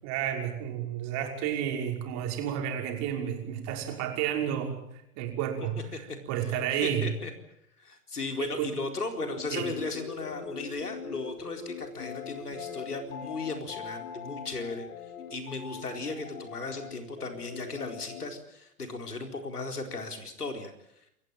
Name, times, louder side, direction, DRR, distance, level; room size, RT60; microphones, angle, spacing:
voice 1, 0.0-4.8 5.2-7.1 8.4-8.7 9.5-9.7, right 9 dB, 35° right, 2 dB, 5.8 m, -31 dB
voice 2, 6.5-7.3 7.8-14.9 15.3-20.7, left 3 dB, 85° left, 5 dB, 4.4 m, -36 dB
sound 1, 9.2-18.3, left 6 dB, 65° left, 3.6 m, -41 dB
27.5 x 15.5 x 9.0 m, 0.78 s
figure-of-eight pair, 115°, 45 cm